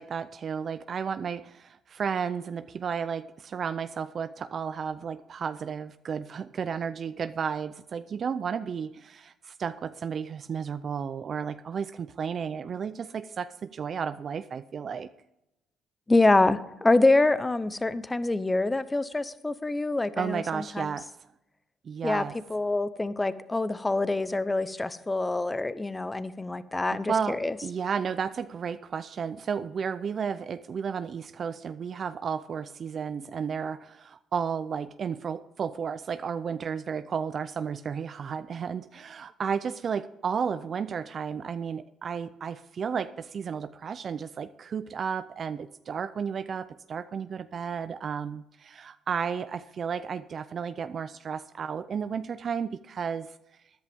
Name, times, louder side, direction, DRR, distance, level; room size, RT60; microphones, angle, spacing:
voice 1, 0.0-15.1 20.2-21.1 21.8-22.4 26.9-53.3, right 6 dB, 50° right, 12 dB, 0.5 m, -33 dB
voice 2, 16.1-20.9 22.0-22.2 22.5-27.6, left 2 dB, 20° left, 15 dB, 0.8 m, -25 dB
14.0 x 10.5 x 3.6 m, 0.88 s
cardioid pair, 80°, 0 cm